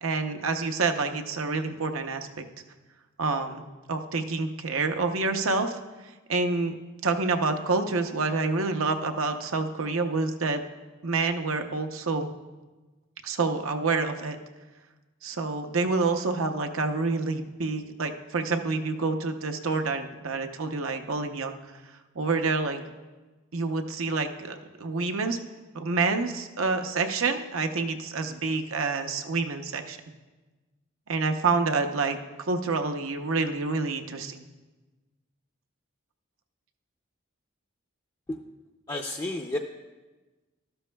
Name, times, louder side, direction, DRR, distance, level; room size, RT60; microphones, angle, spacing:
voice 1, 0.0-2.4 3.2-5.8 6.3-6.7 7.0-10.6 11.0-12.3 13.2-14.4 15.2-21.6 22.2-22.9 23.5-25.4 25.7-30.0 31.1-32.2 32.5-34.4, right 3 dB, 85° right, 6 dB, 0.7 m, -28 dB
voice 2, 38.9-39.6, left 1 dB, 20° left, 1 dB, 0.4 m, -31 dB
13.0 x 12.5 x 2.3 m, 1.2 s
head